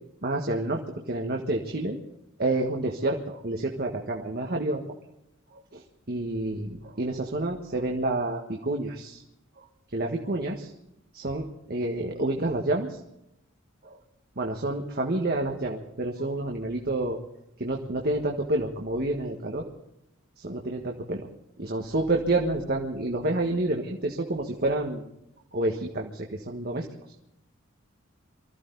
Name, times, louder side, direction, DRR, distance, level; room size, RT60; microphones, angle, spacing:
voice 1, 0.2-0.8 1.1-2.0 2.4-4.8 5.5-5.8 6.1-9.2 9.6-9.7 9.9-10.7 11.1-13.0 14.4-17.2 17.6-19.7 20.4-21.3 21.6-25.0 25.5-26.9, right 2 dB, 50° right, 1 dB, 1.6 m, -29 dB
24.5 x 15.0 x 4.0 m, 0.83 s
head